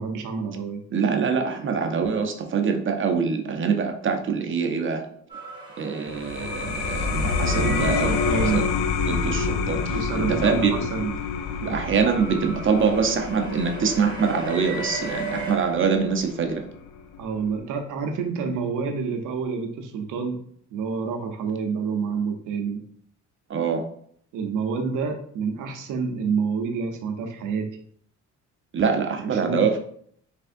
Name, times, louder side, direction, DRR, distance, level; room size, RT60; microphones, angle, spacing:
voice 1, 0.0-0.8 7.5-8.6 9.9-11.2 17.2-20.4 20.7-22.8 24.3-27.7 29.2-29.6, right 5 dB, 85° right, 5 dB, 0.7 m, -28 dB
voice 2, 0.9-5.0 5.8-8.1 8.5-8.6 9.1-10.7 11.6-16.6 23.5-23.8 28.7-29.8, right 5 dB, 40° right, 4 dB, 0.6 m, -24 dB
sound 1, 5.3-8.6 11.0-16.5, right 1 dB, 15° right, 1.4 m, -36 dB
sound 2, 6.1-17.2, left 6 dB, 90° left, 0.5 m, -29 dB
sound 3, 6.9-14.7 15.2-16.0, left 2 dB, 35° left, 0.8 m, -35 dB
3.4 x 3.4 x 2.5 m, 0.64 s
cardioid pair, 90°, 30 cm